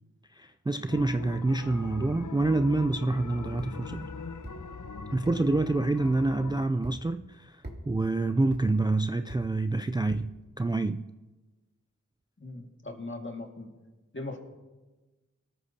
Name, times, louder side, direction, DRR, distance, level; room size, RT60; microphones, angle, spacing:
voice 1, 0.3-4.1 5.1-11.1, right 2 dB, 15° right, 0.3 m, -27 dB
sound 1, 0.9-6.7, left 5 dB, 75° left, 0.8 m, -40 dB
sound 2, 3.6-3.8 4.4-4.6 5.3-5.4 6.1-6.2 6.8-7.0 7.6-7.8 8.5-8.7 9.3-9.4 10.1-10.3, right 1 dB, 35° right, 2.2 m, -42 dB
voice 2, 12.4-13.7 14.1-14.4, left 2 dB, 40° left, 1.9 m, -39 dB
24.0 x 13.5 x 2.8 m
wide cardioid pair, 50°, 31 cm